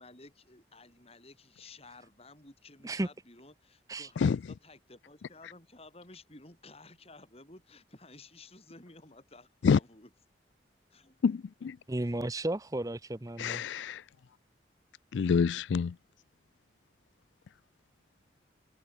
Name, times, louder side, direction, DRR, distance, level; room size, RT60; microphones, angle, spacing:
voice 1, 0.0-10.1 10.9-11.2 12.0-12.1, left 2 dB, 35° left, 4.3 m, -54 dB
voice 2, 11.2-11.8 13.4-14.0 15.1-16.0, left 6 dB, 90° left, 0.4 m, -27 dB
voice 3, 11.9-13.6, right 1 dB, 20° right, 0.7 m, -33 dB
head